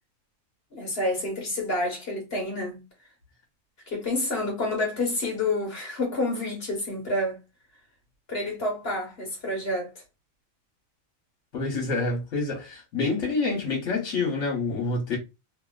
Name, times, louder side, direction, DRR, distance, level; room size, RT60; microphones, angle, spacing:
voice 1, 0.7-2.8 3.9-7.4 8.3-9.9, left 2 dB, 50° left, 1.5 m, -28 dB
voice 2, 11.5-15.2, left 3 dB, 65° left, 1.5 m, -27 dB
2.9 x 2.8 x 2.4 m
omnidirectional pair, 1.4 m